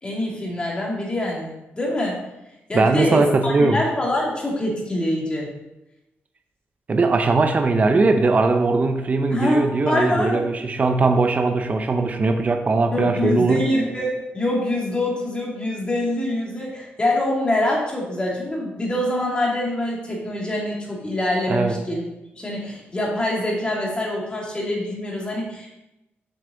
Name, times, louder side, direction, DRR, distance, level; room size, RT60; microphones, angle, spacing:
voice 1, 0.0-2.2 2.7-5.5 9.3-10.5 12.9-22.0 22.3-25.8, left 1 dB, 25° left, -3 dB, 2.4 m, -25 dB
voice 2, 2.7-3.8 6.9-13.6 21.5-21.8, right 3 dB, 35° right, 6 dB, 0.7 m, -20 dB
7.1 x 6.6 x 3.9 m, 0.93 s
cardioid pair, 110°, 4 cm